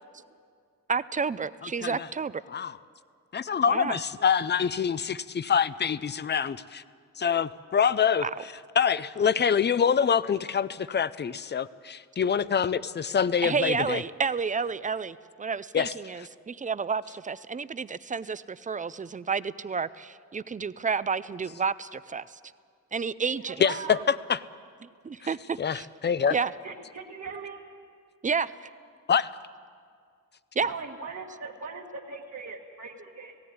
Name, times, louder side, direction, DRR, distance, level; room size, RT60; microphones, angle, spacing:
voice 1, 0.9-2.4 3.7-4.0 8.2-8.3 13.4-22.4 22.9-23.6 25.0-25.9 26.3-26.5 28.2-28.7 30.6-30.7, right 5 dB, 25° right, 16 dB, 0.4 m, -30 dB
voice 2, 3.3-6.8 7.2-8.2 8.8-14.0 15.7-15.9 23.6-24.4 25.6-26.3 29.1-29.3, left 7 dB, 30° left, 17 dB, 0.5 m, -25 dB
voice 3, 23.4-24.0 26.2-26.3 26.6-27.6 30.6-33.3, right 4 dB, 45° right, -2 dB, 1.5 m, -39 dB
17.0 x 17.0 x 9.5 m, 2.1 s
wide cardioid pair, 155°, 33 cm